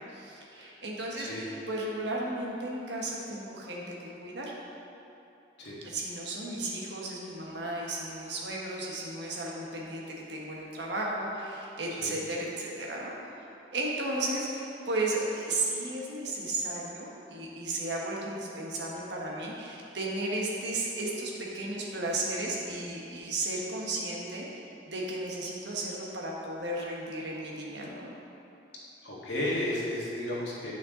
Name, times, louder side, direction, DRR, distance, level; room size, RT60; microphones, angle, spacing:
voice 1, 0.0-4.5 5.8-13.1 13.7-28.1, right 2 dB, 75° right, -3 dB, 1.4 m, -34 dB
voice 2, 29.0-30.7, left 1 dB, 80° left, -6 dB, 1.8 m, -33 dB
9.2 x 6.0 x 3.8 m, 2.8 s
head